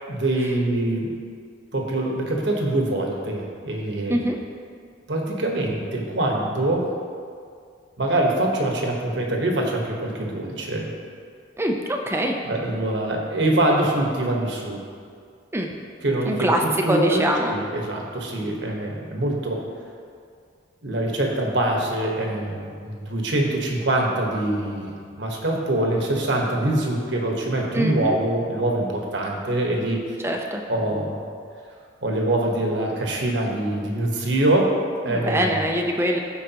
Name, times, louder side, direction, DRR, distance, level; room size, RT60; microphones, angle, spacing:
voice 1, 0.1-1.1 1.7-4.2 5.1-6.9 8.0-10.9 12.4-14.8 16.0-16.5 16.8-19.6 20.8-30.2 30.7-31.2 32.0-34.7 35.0-35.6, right 1 dB, 60° right, 0 dB, 1.2 m, -24 dB
voice 2, 11.6-12.4 15.5-15.7 16.3-16.6 16.9-17.5 27.7-28.2 30.2-30.6 35.1-36.2, equal, 10° right, 2 dB, 0.5 m, -23 dB
14.5 x 4.8 x 2.9 m, 2.2 s
head